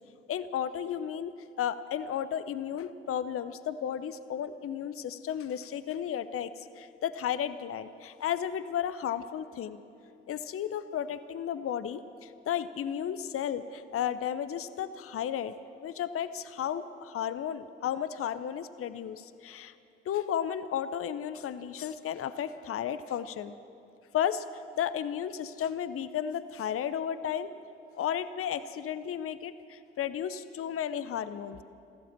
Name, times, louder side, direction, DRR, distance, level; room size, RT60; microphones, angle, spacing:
voice 1, 0.3-9.8 10.3-15.5 15.8-19.7 20.1-23.5 24.1-24.4 24.7-27.5 27.9-31.6, left 9 dB, 50° left, 13 dB, 0.7 m, -33 dB
15.0 x 13.0 x 7.4 m, 2.7 s
hypercardioid pair, 40°, 29 cm